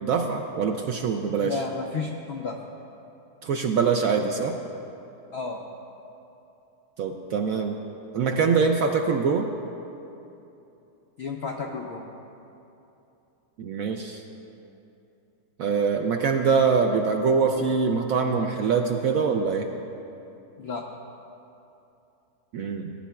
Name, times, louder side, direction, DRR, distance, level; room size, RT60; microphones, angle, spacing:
voice 1, 0.0-1.6 3.4-4.6 7.0-7.8 8.1-9.5 13.6-14.2 15.6-19.7 22.5-22.9, right 5 dB, 75° right, 3 dB, 0.8 m, -24 dB
voice 2, 1.4-2.6 5.3-5.6 11.2-12.0 20.6-20.8, left 4 dB, 90° left, 1 dB, 0.5 m, -32 dB
17.5 x 9.8 x 2.3 m, 2.8 s
omnidirectional pair, 1.9 m